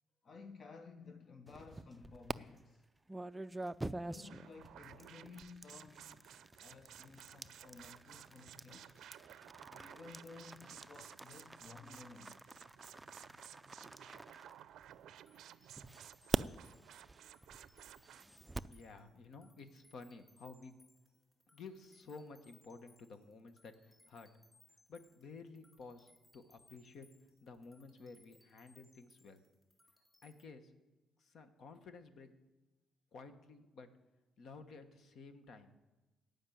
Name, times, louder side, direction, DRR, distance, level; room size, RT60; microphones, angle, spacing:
voice 1, 0.2-2.8 3.8-6.3 6.6-9.0 9.7-12.4, left 4 dB, 50° left, 0.7 m, -55 dB
sound 1, 1.5-2.4 3.1-15.1 15.8-18.8, right 2 dB, 15° right, 0.3 m, -45 dB
sound 2, 4.2-18.3, right 11 dB, 80° right, 0.5 m, -56 dB
sound 3, 14.8-30.4, left 1 dB, 10° left, 2.8 m, -70 dB
voice 2, 18.7-20.7 21.5-24.3 24.9-27.1 27.4-29.4 30.2-30.7 31.2-32.3 33.1-33.9 34.4-35.7, left 4 dB, 65° left, 1.3 m, -53 dB
15.0 x 5.3 x 9.3 m
cardioid pair, 90°, 0 cm